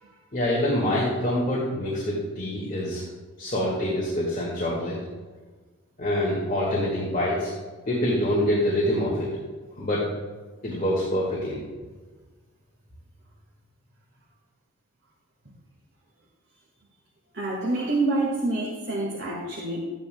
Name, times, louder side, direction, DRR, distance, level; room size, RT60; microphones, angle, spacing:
voice 1, 0.3-3.0 3.4-5.0 6.0-7.5 7.9-9.3 9.8-10.1 10.6-11.6, left 1 dB, 35° left, -5 dB, 1.8 m, -25 dB
voice 2, 17.3-19.8, right 2 dB, 50° right, -4 dB, 1.6 m, -27 dB
13.0 x 9.6 x 2.2 m, 1.4 s
head